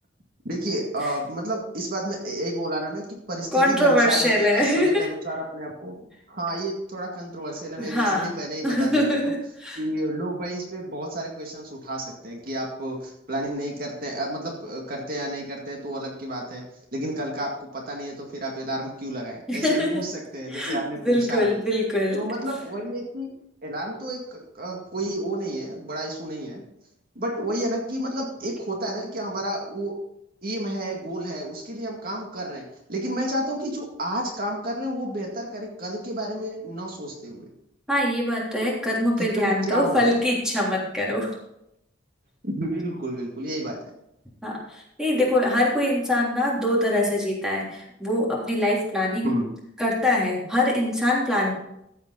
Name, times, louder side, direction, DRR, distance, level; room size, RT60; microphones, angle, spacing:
voice 1, 0.4-5.9 6.3-9.1 9.8-16.6 16.9-21.6 22.1-23.3 23.6-26.6 27.2-30.0 30.4-37.5 39.2-40.1 42.4-43.8 49.2-49.5, right 1 dB, 50° right, 0 dB, 2.1 m, -31 dB
voice 2, 3.5-5.1 7.8-8.3 8.6-9.8 19.5-19.9 20.5-22.2 37.9-41.3 44.4-49.3 49.8-51.5, left 1 dB, 5° right, -4 dB, 3.4 m, -23 dB
14.5 x 8.0 x 4.1 m, 0.79 s
head